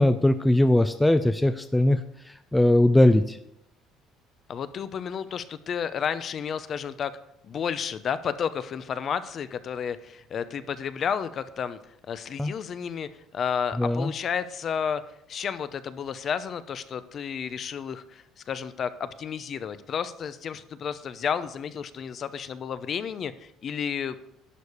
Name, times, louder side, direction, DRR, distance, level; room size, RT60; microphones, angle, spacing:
voice 1, 0.0-2.0 2.5-3.4 12.4-12.5 13.8-14.1, left 1 dB, 5° left, 9 dB, 0.4 m, -20 dB
voice 2, 4.5-7.1 7.4-11.8 12.1-13.1 13.3-15.0 15.3-24.2, left 7 dB, 35° left, 13 dB, 0.7 m, -31 dB
11.0 x 4.9 x 8.4 m, 0.76 s
cardioid pair, 150°, 0 cm